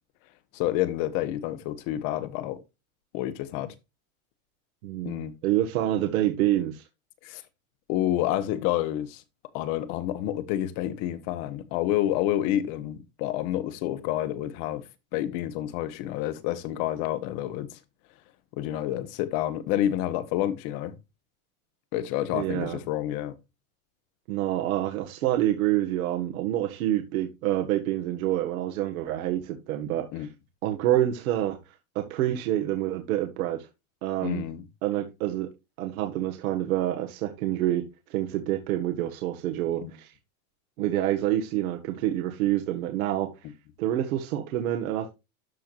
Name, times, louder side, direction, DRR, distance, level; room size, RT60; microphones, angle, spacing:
voice 1, 0.5-2.6 3.1-3.7 5.0-5.3 7.2-7.4 7.9-9.2 9.5-14.8 15.1-17.8 18.6-20.9 21.9-23.4 30.1-30.3 34.2-34.6 39.8-39.9, left 13 dB, 50° left, 1.4 m, -29 dB
voice 2, 4.8-6.8 22.3-22.8 24.3-30.3 30.6-31.6 32.0-33.7 34.0-34.4 34.8-35.5 35.8-37.8 38.1-40.1 40.8-43.3 43.8-45.1, right 13 dB, 75° right, 1.7 m, -27 dB
13.0 x 4.6 x 2.5 m
supercardioid pair, 140°, 43 cm